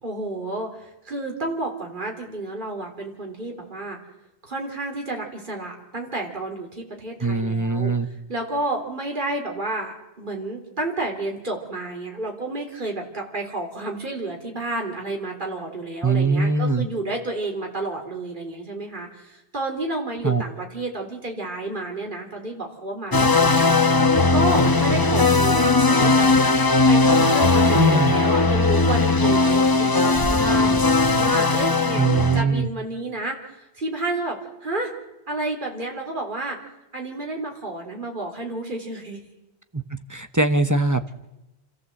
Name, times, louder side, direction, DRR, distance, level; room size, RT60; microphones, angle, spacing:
voice 1, 0.0-4.0 4.4-7.9 8.3-26.6 26.9-27.8 28.1-34.9 35.3-36.6 36.9-39.2, right 2 dB, 50° right, 1 dB, 3.4 m, -30 dB
voice 2, 7.2-8.1 16.0-16.9 20.2-20.4 27.7-28.1 32.0-32.7 39.7-39.8 40.1-41.1, right 3 dB, 20° right, 8 dB, 0.8 m, -21 dB
sound 1, 23.1-32.4, left 3 dB, 20° left, 0.9 m, -18 dB
28.0 x 14.0 x 7.7 m, 0.97 s
omnidirectional pair, 1.1 m